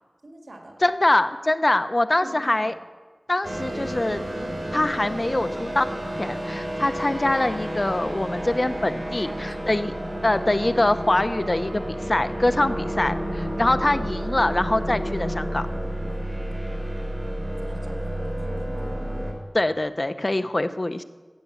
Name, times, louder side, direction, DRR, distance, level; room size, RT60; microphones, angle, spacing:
voice 1, 0.2-0.8 2.2-2.8 9.1-9.6 10.1-10.6 12.0-12.1 16.0-16.2 16.8-17.0 17.4-18.9, right 1 dB, 80° right, 2 dB, 1.8 m, -45 dB
voice 2, 0.8-2.7 3.3-4.2 4.7-5.9 6.2-9.9 10.2-15.7 19.5-21.0, left 1 dB, 40° left, 11 dB, 0.7 m, -23 dB
sound 1, 3.4-19.3, equal, 45° right, 3.8 m, -30 dB
13.5 x 8.4 x 8.3 m, 1.4 s
wide cardioid pair, 60°, 0 cm